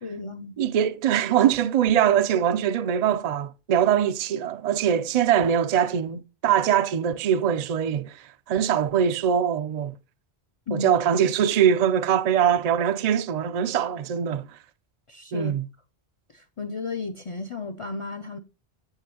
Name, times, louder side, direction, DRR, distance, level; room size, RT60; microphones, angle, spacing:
voice 1, 0.0-0.5 10.7-10.9 15.1-15.5 16.3-18.4, left 3 dB, 40° left, 0.5 m, -33 dB
voice 2, 0.6-9.9 10.7-14.6 15.3-15.7, right 9 dB, 55° right, 0.5 m, -22 dB
8.3 x 8.0 x 2.8 m
omnidirectional pair, 1.0 m